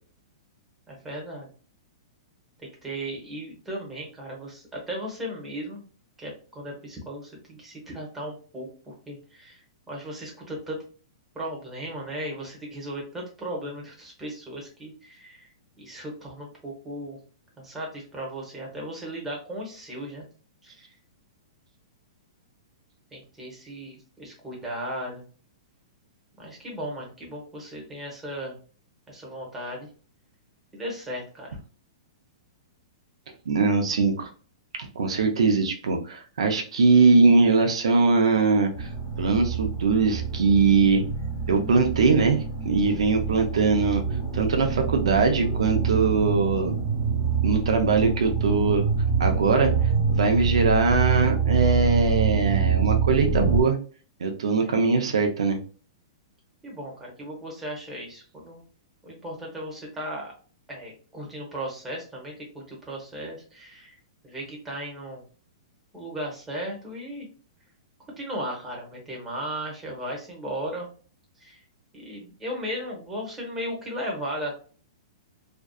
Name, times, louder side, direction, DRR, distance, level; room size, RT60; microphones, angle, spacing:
voice 1, 0.9-1.5 2.6-5.8 6.2-10.8 11.3-15.5 15.8-17.2 17.6-20.2 20.6-20.9 23.1-25.2 26.4-28.6 29.1-29.9 30.7-31.6 56.6-58.6 59.0-60.3 60.7-64.0 64.2-65.2 65.9-67.3 68.2-70.9 71.4-71.6 71.9-74.5, equal, 10° right, -3 dB, 0.9 m, -36 dB
voice 2, 33.5-34.3 35.0-38.9 39.2-41.0 41.5-44.0 44.3-46.8 47.4-48.8 49.2-49.7 50.1-53.8 54.2-55.6, right 4 dB, 90° right, 4 dB, 0.5 m, -21 dB
sound 1, 38.7-53.6, right 5 dB, 15° left, 1.0 m, -26 dB
2.6 x 2.3 x 2.2 m, 0.39 s
hypercardioid pair, 150°, 3 cm